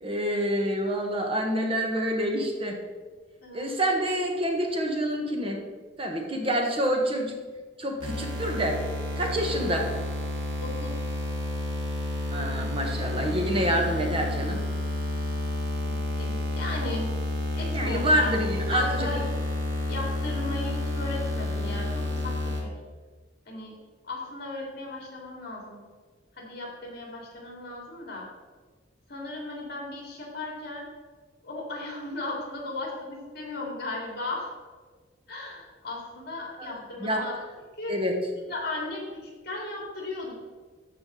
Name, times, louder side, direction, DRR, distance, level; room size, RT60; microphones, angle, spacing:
voice 1, 0.0-2.8 3.5-5.6 6.0-7.4 7.8-8.8 9.2-9.9 12.3-14.6 17.7-19.1 36.6-36.7 37.0-37.2 37.9-38.2, equal, 30° right, 2 dB, 1.4 m, -27 dB
sound 1, 8.0-22.6, left 1 dB, 75° right, 2.1 m, -30 dB
voice 2, 10.6-11.0 15.8-17.1 17.5-18.3 18.7-19.3 19.9-22.7 23.5-23.7 24.1-25.8 26.4-28.2 29.1-30.8 31.4-34.5 35.3-37.3 37.8-37.9 38.5-40.3, left 2 dB, 55° left, -1 dB, 2.5 m, -36 dB
13.5 x 5.0 x 3.9 m, 1.4 s
head